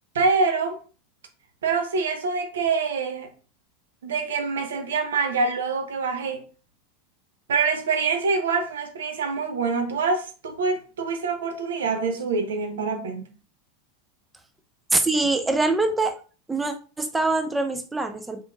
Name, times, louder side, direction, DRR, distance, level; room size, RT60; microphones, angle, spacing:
voice 1, 0.1-0.8 1.6-3.3 4.0-6.4 7.5-13.3, right 4 dB, 75° right, 0.6 m, -25 dB
voice 2, 14.9-16.2 16.5-18.4, right 3 dB, 10° right, 0.4 m, -24 dB
3.8 x 3.4 x 2.3 m
hypercardioid pair, 85°, 0 cm